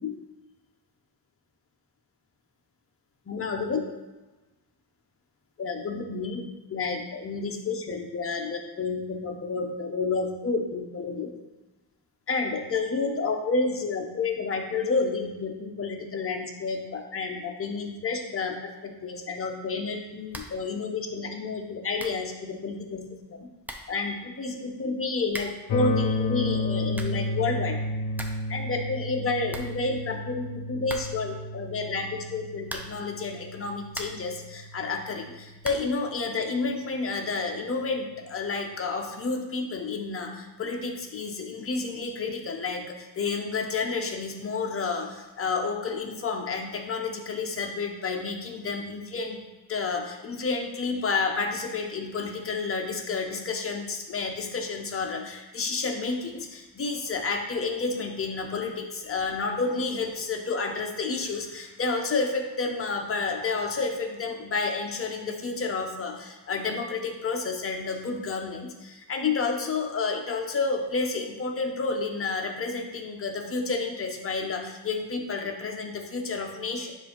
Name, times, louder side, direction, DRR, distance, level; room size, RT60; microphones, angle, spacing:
voice 1, 3.3-3.8 5.6-6.4 6.7-11.3 12.3-18.5 18.8-23.0 23.9-27.8 28.5-35.3 35.6-40.3 40.6-42.8 43.2-45.1 45.4-49.4 49.7-68.7 69.1-76.9, left 4 dB, 35° left, 2 dB, 0.7 m, -30 dB
sound 1, 20.3-20.7 20.9-21.0 21.6-21.7 22.0-22.3 23.2-23.3 23.6-24.0 25.3-25.7 26.7-27.3 27.7-27.8 27.9-28.5 28.8-28.9 29.1-29.2 29.5-30.3 30.8-31.4 32.6-33.1 33.6-34.4 35.6-36.0, right 1 dB, 5° right, 0.3 m, -40 dB
sound 2, 25.7-35.6, left 2 dB, 80° left, 0.7 m, -32 dB
7.2 x 2.6 x 5.2 m, 1.1 s
wide cardioid pair, 170°, 40 cm